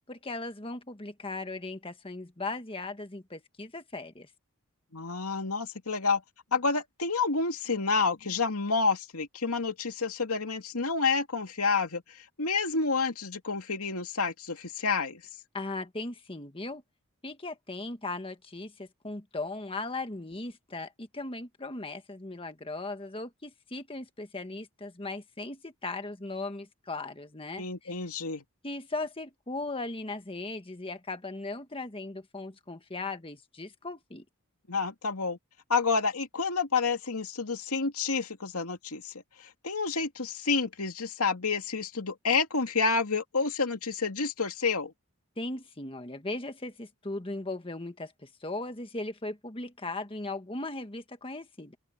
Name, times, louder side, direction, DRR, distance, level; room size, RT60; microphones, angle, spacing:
voice 1, 0.0-4.3 15.5-16.8 17.2-28.1 28.6-34.2 45.4-51.8, left 2 dB, 25° left, 1.6 m, -38 dB
voice 2, 4.9-6.2 6.5-12.0 12.4-15.2 27.6-28.4 34.7-35.4 35.7-39.1 39.4-44.9, left 4 dB, 85° left, 2.5 m, -29 dB
open air
head